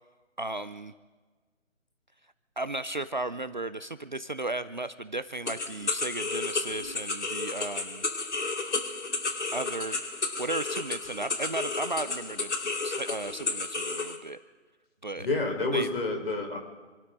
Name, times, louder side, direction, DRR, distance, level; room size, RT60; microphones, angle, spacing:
voice 1, 0.4-0.9 2.6-8.0 9.5-10.0 10.4-12.6 12.8-14.4 15.0-15.3 15.7-15.9, right 2 dB, 40° right, 12 dB, 0.5 m, -35 dB
sound 1, 5.5-14.2, left 3 dB, 65° left, 2.5 m, -32 dB
voice 2, 15.2-16.6, left 2 dB, 50° left, 3 dB, 4.8 m, -29 dB
28.0 x 13.0 x 4.0 m, 1.4 s
figure-of-eight pair, 165°, 38 cm